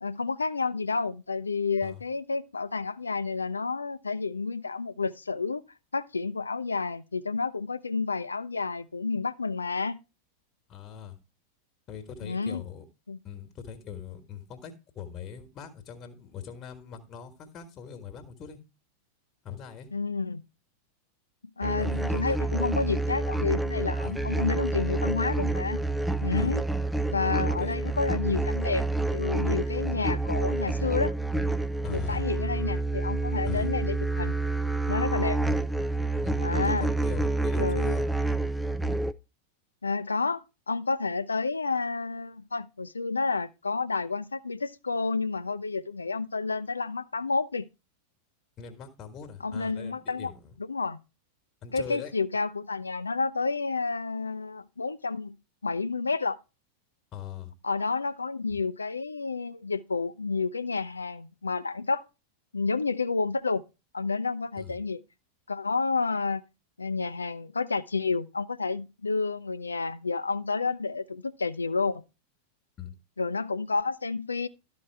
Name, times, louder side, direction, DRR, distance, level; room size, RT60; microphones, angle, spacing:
voice 1, 0.0-5.6 5.9-10.0 12.2-12.6 13.1-13.2 19.9-20.4 21.6-25.8 26.2-26.6 27.1-28.8 29.1-31.1 31.9-34.3 34.9-35.4 36.4-36.9 37.6-38.0 39.8-47.7 49.4-50.3 50.7-51.0 51.7-55.4 55.6-56.4 57.6-62.0 62.5-63.6 63.9-65.0 65.5-66.4 66.8-72.0 73.2-74.5, left 4 dB, 75° left, 0.5 m, -30 dB
voice 2, 10.7-11.2 11.9-12.8 13.2-18.6 19.4-19.9 21.8-22.4 24.0-24.2 26.4-26.5 27.6-27.8 31.8-32.2 33.4-33.7 36.2-38.1 48.6-50.5 51.6-52.1 57.1-57.5 64.6-64.8 72.8-72.9, left 8 dB, 30° left, 1.5 m, -41 dB
sound 1, 21.6-39.1, right 2 dB, 5° right, 0.4 m, -28 dB
12.5 x 4.3 x 4.5 m
figure-of-eight pair, 90°, 0 cm